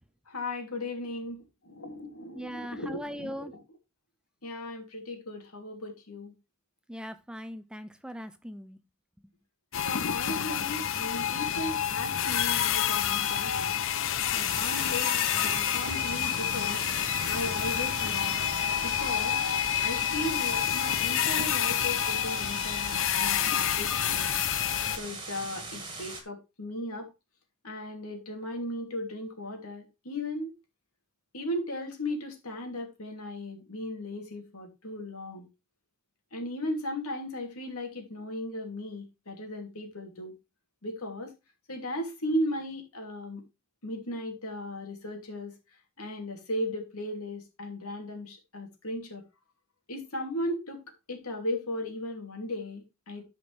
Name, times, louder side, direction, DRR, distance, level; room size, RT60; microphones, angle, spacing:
voice 1, 0.3-3.6 4.4-6.3 9.8-13.8 14.3-16.8 17.3-18.4 18.8-19.4 19.8-24.3 24.9-27.1 27.6-30.5 31.3-35.5 36.3-40.3 40.8-41.3 41.7-43.4 43.8-45.5 46.0-49.2 49.9-50.8 51.1-53.2, left 1 dB, 80° left, 2.9 m, -36 dB
voice 2, 2.3-3.5 6.9-8.8, equal, 5° right, 0.5 m, -40 dB
sound 1, 9.7-25.0, left 10 dB, 60° left, 0.7 m, -28 dB
sound 2, 14.4-26.2, right 3 dB, 20° right, 1.9 m, -40 dB
13.0 x 5.3 x 3.3 m
head